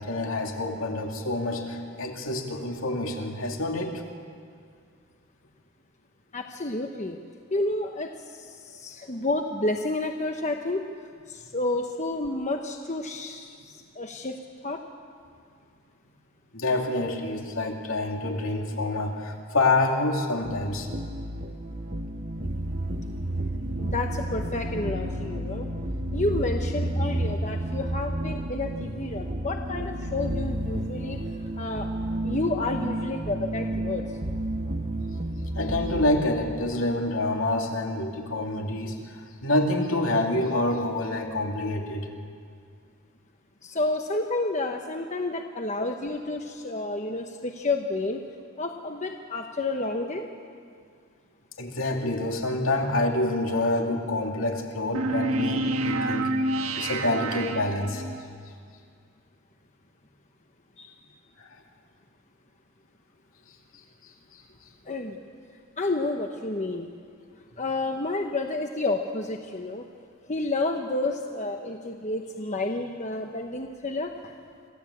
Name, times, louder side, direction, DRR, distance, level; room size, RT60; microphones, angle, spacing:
voice 1, 0.0-3.9 16.5-20.9 35.6-42.1 51.6-56.3 56.8-58.0 61.4-61.6, left 2 dB, 70° left, 1 dB, 2.8 m, -27 dB
voice 2, 6.3-7.2 7.5-10.8 11.3-14.4 14.6-14.8 23.8-25.7 26.1-31.2 31.6-31.9 32.2-34.0 43.6-48.2 48.6-50.2 60.8-60.9 64.9-65.2 65.8-66.9 67.6-69.8 70.3-74.3, left 2 dB, 35° left, 4 dB, 1.1 m, -30 dB
sound 1, 20.4-36.2, right 1 dB, 40° right, 1.2 m, -31 dB
sound 2, 54.9-58.2, right 2 dB, 90° right, 1.5 m, -28 dB
26.5 x 15.5 x 8.6 m, 2.2 s
head